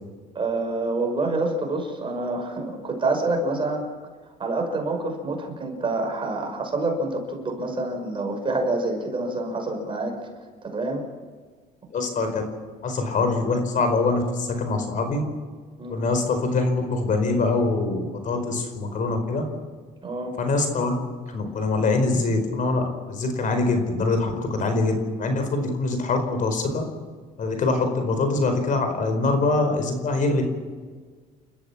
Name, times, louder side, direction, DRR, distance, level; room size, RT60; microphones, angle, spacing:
voice 1, 0.3-3.9 4.4-10.1 10.6-11.0 15.8-16.0 20.0-20.3, right 2 dB, 30° right, 3 dB, 5.7 m, -27 dB
voice 2, 11.9-12.4 12.8-15.2 15.9-19.4 20.4-21.0 21.3-26.8 27.4-30.4, left 3 dB, 50° left, 6 dB, 4.7 m, -24 dB
29.5 x 14.0 x 7.3 m, 1.5 s
cardioid pair, 110°, 17 cm